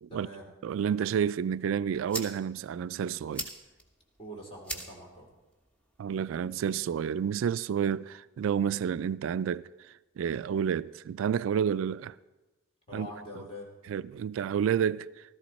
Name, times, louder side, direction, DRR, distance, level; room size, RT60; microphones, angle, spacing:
voice 1, 0.1-0.5 4.2-5.3 12.9-13.7, left 1 dB, 30° left, 2.6 m, -44 dB
voice 2, 0.6-3.5 6.0-9.7 10.2-12.1 12.9-13.1 13.9-15.1, right 8 dB, 85° right, 0.3 m, -30 dB
sound 1, 1.5-7.5, right 1 dB, 5° left, 1.2 m, -44 dB
15.0 x 13.5 x 4.2 m
head